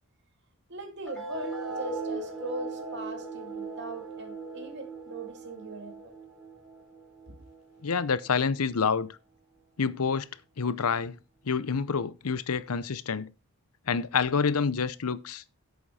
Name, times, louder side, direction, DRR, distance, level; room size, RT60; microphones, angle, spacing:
voice 1, 0.7-6.1, right 2 dB, 50° right, 2.4 m, -40 dB
sound 1, 1.1-8.0, right 3 dB, ahead, 4.0 m, -39 dB
voice 2, 7.8-9.2 9.8-10.3 10.6-11.2 11.5-13.3 13.9-15.4, left 5 dB, 80° left, 0.7 m, -27 dB
10.0 x 8.1 x 4.2 m
head